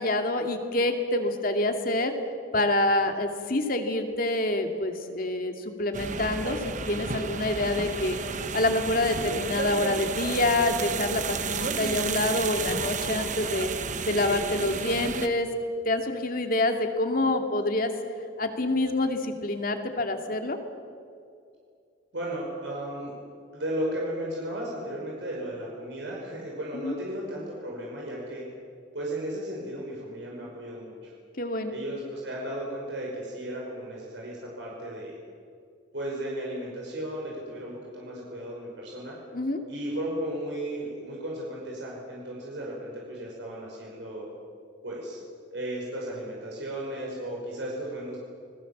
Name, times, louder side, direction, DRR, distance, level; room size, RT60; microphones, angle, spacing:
voice 1, 0.0-2.1 2.5-13.7 14.0-15.5 15.8-17.9 18.4-20.6 26.7-27.0 31.4-31.7 39.3-39.6, left 2 dB, 50° left, 5 dB, 2.5 m, -27 dB
sound 1, 5.9-15.3, right 5 dB, 40° right, 1.1 m, -32 dB
voice 2, 22.1-23.1 23.5-28.4 28.9-31.1 31.7-35.2 35.9-39.2 39.7-44.3 44.8-45.2 45.5-48.2, right 1 dB, 75° right, -3 dB, 5.7 m, -35 dB
29.5 x 20.5 x 7.4 m, 2.4 s
head